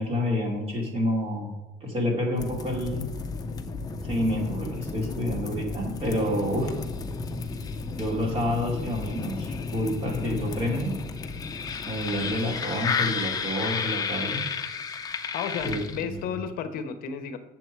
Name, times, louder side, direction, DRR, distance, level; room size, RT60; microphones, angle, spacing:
voice 1, 0.0-1.5 1.8-3.1 4.0-6.7 8.0-11.0 11.9-14.4 15.6-16.2, left 1 dB, 35° right, 0 dB, 2.3 m, -28 dB
sound 1, 2.4-16.3, left 5 dB, 20° left, 0.7 m, -32 dB
voice 2, 15.3-17.4, left 7 dB, 55° left, 8 dB, 0.9 m, -32 dB
8.4 x 7.3 x 4.6 m, 1.2 s
cardioid pair, 155°, 18 cm